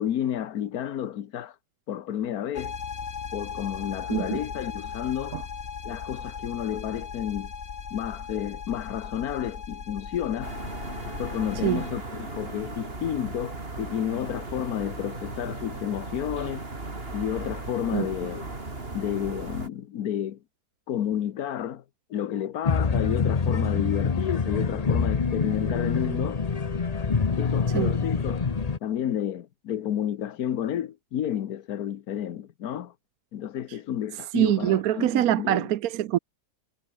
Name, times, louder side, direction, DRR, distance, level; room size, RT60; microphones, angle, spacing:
voice 1, 0.0-1.5 1.9-2.8 3.3-5.5 5.8-7.5 7.9-10.5 11.1-16.7 17.1-18.5 18.9-20.4 20.9-21.8 22.1-26.4 27.4-28.4 28.8-32.9 33.3-35.7, left 10 dB, 70° left, 1.4 m, -31 dB
sound 1, 2.5-11.9, left 6 dB, 45° left, 1.5 m, -37 dB
sound 2, 10.4-19.7, right 2 dB, 35° right, 3.5 m, -37 dB
sound 3, 22.7-28.8, left 5 dB, 30° left, 0.8 m, -26 dB
voice 2, 34.3-36.2, right 12 dB, 70° right, 1.1 m, -24 dB
omnidirectional pair, 1.7 m